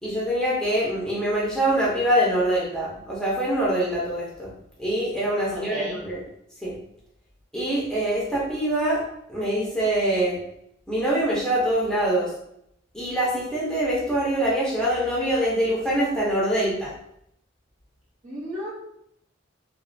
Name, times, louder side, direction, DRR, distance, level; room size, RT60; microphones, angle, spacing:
voice 1, 0.0-4.5 4.8-6.2 6.6-6.8 7.5-9.0 9.3-10.4 10.9-12.3 12.9-16.9, right 1 dB, 5° left, -6 dB, 0.7 m, -24 dB
voice 2, 5.5-6.0 18.2-18.7, equal, 40° right, -6 dB, 0.7 m, -33 dB
3.1 x 2.3 x 2.6 m, 0.74 s
head